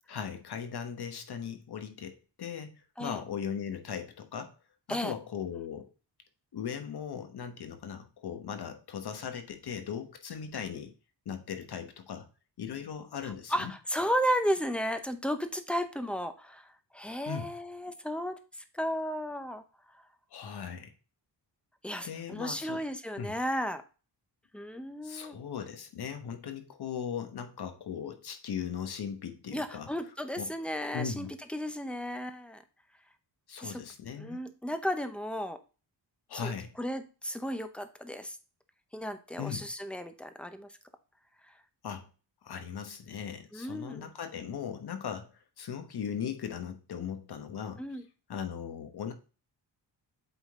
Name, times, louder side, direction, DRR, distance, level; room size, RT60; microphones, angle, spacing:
voice 1, 0.1-4.5 4.9-5.9 6.5-10.9 11.2-12.3 12.6-13.7 17.3-17.5 20.3-20.9 22.0-22.8 23.2-23.3 25.0-29.9 30.4-30.5 30.9-31.3 33.5-34.4 36.3-36.7 39.4-39.7 41.8-42.1 42.4-47.8 48.3-49.1, left 7 dB, 60° left, 7 dB, 1.3 m, -38 dB
voice 2, 13.5-19.6 19.9-20.0 21.8-23.8 24.5-25.4 29.5-32.6 33.6-33.8 34.2-35.6 36.3-36.5 36.8-38.4 38.9-40.7 41.4-41.5 43.5-44.1 47.8-48.0, equal, 5° left, 9 dB, 0.7 m, -34 dB
8.3 x 3.9 x 3.7 m, 0.34 s
wide cardioid pair, 130°, 43 cm